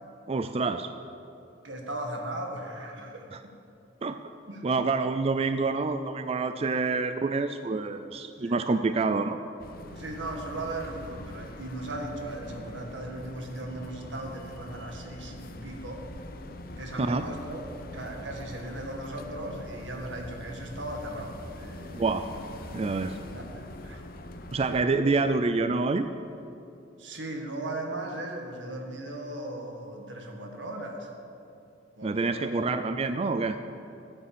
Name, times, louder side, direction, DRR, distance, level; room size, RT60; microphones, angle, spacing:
voice 1, 0.3-0.9 3.3-3.4 4.0-4.2 4.6-9.4 17.0-17.2 21.9-22.3 22.7-23.2 24.5-26.1 32.0-33.6, right 3 dB, 35° right, 9 dB, 0.4 m, -27 dB
voice 2, 1.6-3.3 4.5-4.6 8.3-8.9 9.9-16.1 16.8-17.7 17.9-22.0 23.3-24.0 25.0-25.2 27.0-31.1 32.0-32.8, right 1 dB, 85° right, 2 dB, 1.9 m, -37 dB
sound 1, 9.6-24.9, left 1 dB, 55° left, 0.8 m, -43 dB
14.0 x 8.8 x 6.9 m, 2.7 s
head